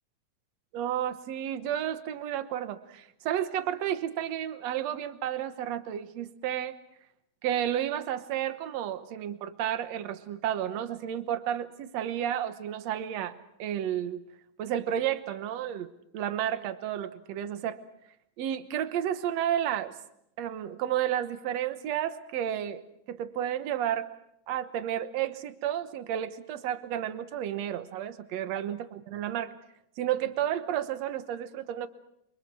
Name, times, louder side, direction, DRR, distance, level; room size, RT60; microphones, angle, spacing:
voice 1, 0.7-6.8 7.4-14.2 14.6-17.8 18.4-19.9 20.4-22.8 23.1-24.1 24.5-28.8 29.1-29.5 30.0-31.9, right 10 dB, 70° right, 11 dB, 1.6 m, -31 dB
28.0 x 25.0 x 6.2 m, 0.77 s
omnidirectional pair, 4.5 m